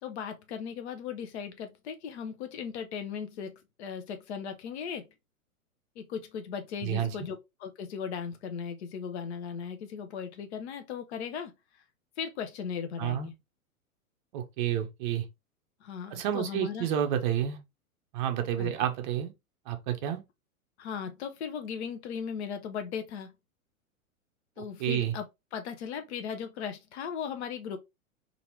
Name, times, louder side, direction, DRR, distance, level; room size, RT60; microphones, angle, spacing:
voice 1, 0.0-5.1 6.0-11.5 12.2-13.3 15.8-16.9 18.6-18.7 20.8-23.3 24.6-25.2 25.5-27.8, left 7 dB, 50° left, 0.7 m, -37 dB
voice 2, 6.8-7.1 13.0-13.3 14.3-15.2 16.1-17.6 18.1-19.3 19.7-20.2 24.8-25.1, right 10 dB, 35° right, 0.6 m, -30 dB
2.8 x 2.6 x 2.9 m
figure-of-eight pair, 105°, 43 cm